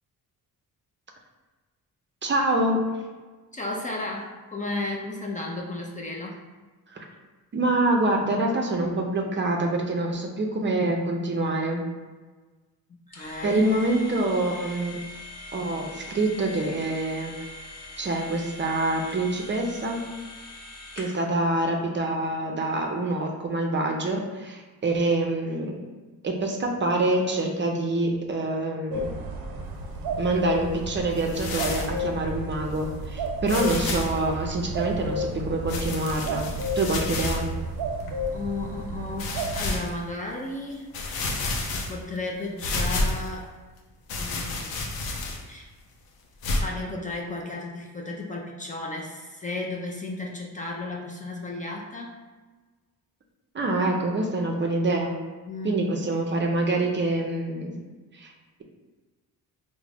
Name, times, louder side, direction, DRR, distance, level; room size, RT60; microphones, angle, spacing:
voice 1, 2.2-2.8 6.9-7.0 7.5-11.8 13.4-15.0 15.5-17.3 18.0-20.0 21.0-25.8 26.2-29.1 30.2-36.5 36.8-37.5 53.5-55.2 55.6-57.7 58.1-58.3, right 2 dB, 35° right, 1 dB, 0.5 m, -26 dB
voice 2, 3.5-6.4 12.9-13.6 38.3-41.4 41.7-43.5 44.2-45.0 45.5-45.7 46.5-52.2 55.5-55.9, left 2 dB, 25° left, -2 dB, 0.4 m, -34 dB
sound 1, 13.1-21.3, left 2 dB, 45° left, 0.9 m, -42 dB
sound 2, 28.9-39.7, equal, 80° right, 0.5 m, -32 dB
sound 3, 31.2-32.0 32.7-32.8 33.5-34.2 35.7-37.5 38.1-38.2 39.2-39.9 40.5-40.6 40.9-42.2 42.6-43.3 44.1-45.5 46.4-46.6, left 2 dB, 85° left, 0.6 m, -30 dB
3.6 x 2.1 x 3.3 m, 1.3 s
cardioid pair, 95°, 35 cm